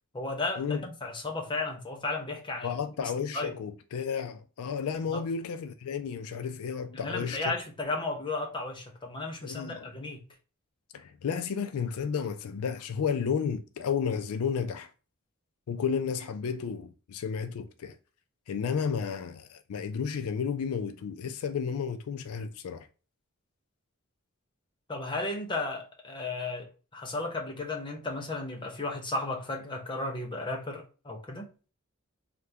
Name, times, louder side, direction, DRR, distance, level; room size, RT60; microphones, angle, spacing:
voice 1, 0.1-3.5 5.1-5.2 6.9-10.3 24.9-31.5, left 2 dB, 20° left, 0.7 m, -34 dB
voice 2, 2.6-7.5 9.4-9.9 10.9-14.9 15.7-18.0 18.5-22.9, left 6 dB, 70° left, 0.4 m, -32 dB
2.7 x 2.4 x 3.3 m
head